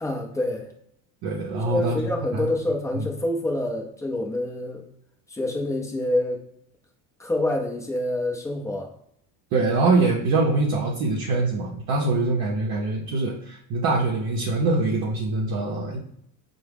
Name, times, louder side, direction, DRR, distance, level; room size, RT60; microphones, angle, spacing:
voice 1, 0.0-0.7 1.5-4.8 5.3-6.4 7.2-8.9, left 1 dB, 5° left, 0 dB, 0.4 m, -27 dB
voice 2, 1.2-2.0 2.3-2.5 2.9-3.1 9.5-16.0, right 3 dB, 50° right, -1 dB, 0.7 m, -24 dB
4.5 x 2.1 x 3.4 m, 0.70 s
cardioid pair, 125°, 48 cm